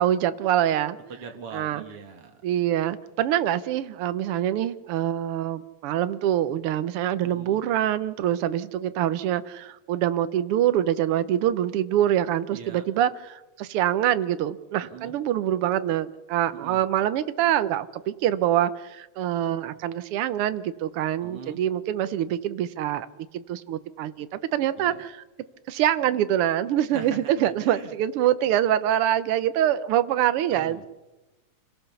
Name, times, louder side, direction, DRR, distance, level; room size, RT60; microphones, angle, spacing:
voice 1, 0.0-1.0 1.5-1.8 2.4-23.1 23.3-25.2 25.7-30.9, right 11 dB, 70° right, 13 dB, 1.4 m, -25 dB
voice 2, 1.1-2.4 7.2-7.6 12.5-12.8 14.8-15.1 16.5-16.8 21.2-21.6 24.7-25.1 26.9-27.9 30.5-30.9, right 6 dB, 55° right, 5 dB, 2.7 m, -42 dB
27.0 x 17.0 x 7.0 m, 1.1 s
omnidirectional pair, 3.3 m